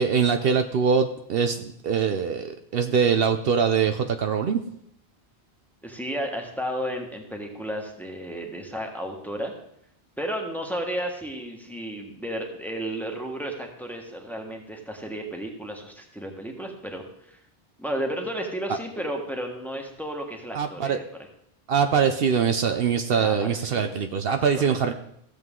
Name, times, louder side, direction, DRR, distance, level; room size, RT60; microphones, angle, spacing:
voice 1, 0.0-4.6 20.5-21.0 21.7-24.9, right 6 dB, 65° right, 8 dB, 0.8 m, -23 dB
voice 2, 5.8-9.5 10.2-17.4 17.8-21.0 23.1-24.0 24.3-24.8, equal, ahead, 2 dB, 1.4 m, -33 dB
15.0 x 7.7 x 3.7 m, 0.73 s
omnidirectional pair, 1.1 m